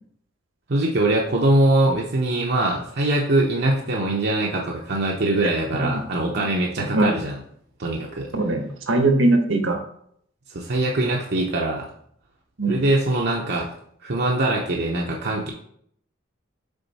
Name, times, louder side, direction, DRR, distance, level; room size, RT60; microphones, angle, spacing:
voice 1, 0.7-7.4 7.8-8.3 10.5-11.9 12.7-13.7 14.0-15.5, right 2 dB, 55° right, -1 dB, 0.7 m, -22 dB
voice 2, 6.8-7.1 8.3-9.8 12.6-12.8, right 2 dB, 70° right, 4 dB, 1.1 m, -20 dB
7.0 x 3.8 x 4.1 m, 0.67 s
head